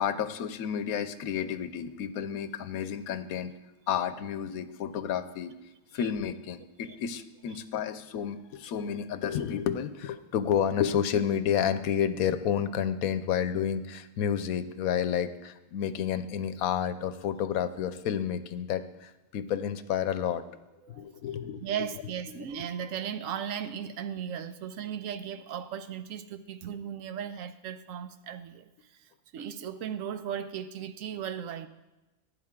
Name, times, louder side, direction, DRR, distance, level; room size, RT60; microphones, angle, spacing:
voice 1, 0.0-3.5 3.9-5.5 5.9-20.4 20.9-21.6, left 8 dB, 85° left, 12 dB, 1.1 m, -30 dB
voice 2, 21.6-31.7, right 8 dB, 70° right, 11 dB, 0.9 m, -37 dB
14.5 x 8.9 x 3.7 m, 1.0 s
omnidirectional pair, 1.5 m